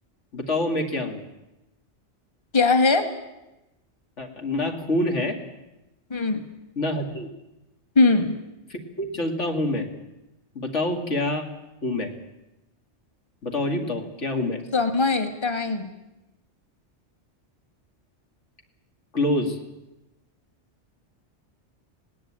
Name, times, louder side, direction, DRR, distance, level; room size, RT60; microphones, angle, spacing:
voice 1, 0.3-1.2 4.2-5.4 6.8-7.3 8.7-9.9 10.5-11.5 11.8-12.2 13.4-14.7 19.1-19.6, left 1 dB, 85° left, 4 dB, 2.7 m, -26 dB
voice 2, 2.5-3.1 6.1-6.4 7.9-8.4 14.7-15.9, left 3 dB, 25° left, 7 dB, 1.6 m, -20 dB
19.5 x 18.0 x 8.8 m, 0.98 s
omnidirectional pair, 1.2 m